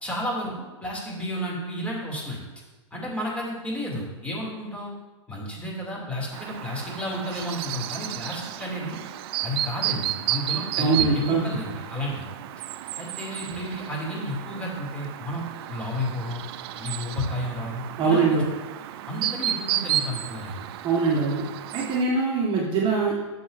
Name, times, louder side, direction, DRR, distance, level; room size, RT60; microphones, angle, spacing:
voice 1, 0.0-2.4 2.9-4.9 5.3-9.0 9.4-12.3 13.0-16.4 16.8-18.4 19.1-20.6, left 1 dB, 10° left, -4 dB, 2.7 m, -32 dB
Chirp tweet, 6.3-22.0, right 12 dB, 50° right, 0.4 m, -32 dB
voice 2, 10.8-11.4 18.0-18.4 20.8-21.4 21.7-23.1, right 4 dB, 30° right, -3 dB, 1.5 m, -22 dB
11.5 x 7.1 x 2.6 m, 1.2 s
hypercardioid pair, 105°, 16 cm